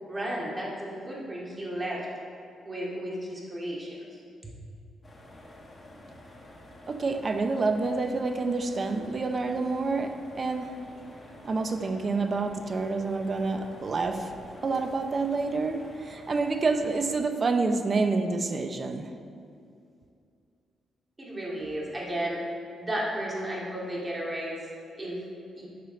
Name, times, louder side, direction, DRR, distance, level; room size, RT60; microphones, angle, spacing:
voice 1, 0.0-2.0 2.6-3.9 4.4-4.5 21.2-22.4 22.8-24.7 25.0-25.2 25.6-25.7, right 1 dB, 20° right, 2.3 m, -33 dB
sound 1, 5.0-17.2, left 1 dB, 20° left, 1.6 m, -49 dB
voice 2, 6.9-10.8 11.4-14.3 14.6-19.1, right 3 dB, 35° right, 0.7 m, -28 dB
12.0 x 6.8 x 4.4 m
cardioid pair, 130°, 0 cm